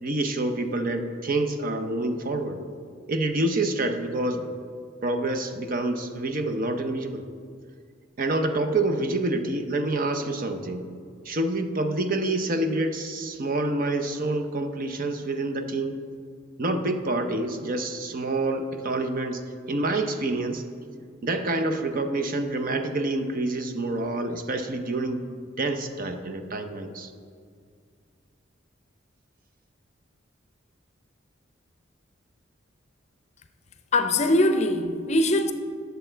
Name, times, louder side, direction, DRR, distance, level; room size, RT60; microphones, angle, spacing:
voice 1, 0.0-2.6 3.1-4.5 5.0-7.2 8.2-10.9 11.2-16.0 16.6-19.4 19.7-20.6 21.2-25.3 25.6-27.1, right 2 dB, 45° right, 0.7 m, -27 dB
voice 2, 33.9-35.5, left 1 dB, 35° left, 0.6 m, -22 dB
10.0 x 6.8 x 4.5 m
head